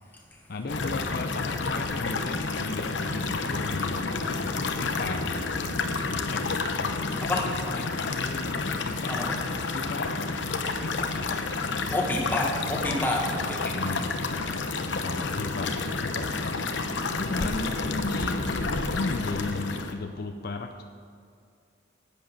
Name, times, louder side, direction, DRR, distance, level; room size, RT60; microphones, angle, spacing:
voice 1, 0.5-5.5 6.1-6.8 7.5-8.6 8.9-9.2 9.7-10.3 10.8-11.5 13.7-14.1 14.9-16.4 17.1-18.4 18.9-20.8, left 3 dB, 55° left, 6 dB, 0.5 m, -35 dB
sound 1, 0.7-19.9, left 3 dB, 80° left, 0.8 m, -30 dB
voice 2, 7.1-7.5 9.1-9.4 11.9-13.8 16.9-17.5, left 1 dB, 10° left, -2 dB, 1.7 m, -30 dB
11.0 x 8.4 x 6.6 m, 2.3 s
head